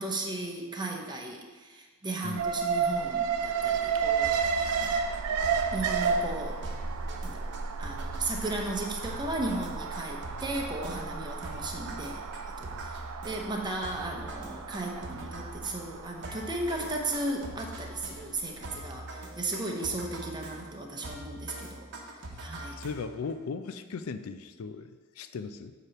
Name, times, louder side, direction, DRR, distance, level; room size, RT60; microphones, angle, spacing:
voice 1, 0.0-4.3 4.8-4.9 5.7-6.6 7.2-7.5 7.8-12.2 12.6-13.0 13.2-21.9 22.4-22.8, right 2 dB, 20° right, 1 dB, 0.8 m, -35 dB
voice 2, 2.2-2.6 22.7-25.7, left 5 dB, 70° left, 10 dB, 0.4 m, -38 dB
Alarm, 2.4-18.5 18.8-18.9, right 6 dB, 90° right, 0.5 m, -32 dB
sound 1, 4.2-23.3, right 1 dB, 55° right, 0.9 m, -44 dB
8.0 x 3.0 x 5.8 m, 1.4 s
head